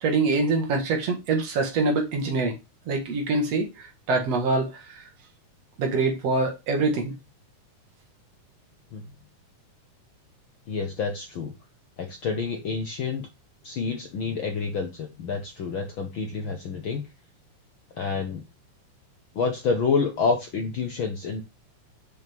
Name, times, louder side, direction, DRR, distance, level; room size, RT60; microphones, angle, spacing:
voice 1, 0.0-2.5 2.9-3.7 4.1-4.7 5.8-7.1, right 3 dB, 55° right, 2.7 m, -24 dB
voice 2, 10.7-11.5 12.0-13.3 13.6-17.0 18.0-18.4 19.3-21.4, left 5 dB, 70° left, 1.2 m, -28 dB
6.3 x 6.1 x 3.6 m
omnidirectional pair, 3.6 m